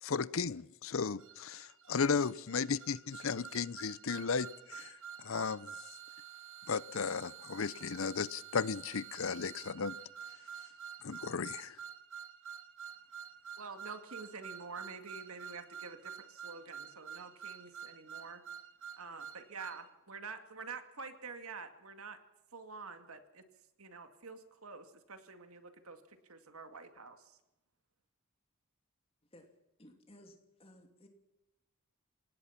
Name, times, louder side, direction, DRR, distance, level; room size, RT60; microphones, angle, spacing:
voice 1, 0.0-4.9 5.2-5.7 6.7-10.0 11.0-11.8, left 5 dB, 70° left, 19 dB, 0.7 m, -35 dB
sound 1, 1.2-19.8, right 8 dB, 60° right, 1.6 m, -49 dB
voice 2, 13.6-18.4 19.0-22.2 22.5-23.4 23.8-27.4, right 4 dB, 85° right, 8 dB, 2.2 m, -48 dB
voice 3, 29.8-31.1, left 1 dB, 25° left, 4 dB, 2.9 m, -58 dB
27.5 x 18.0 x 5.9 m, 0.95 s
head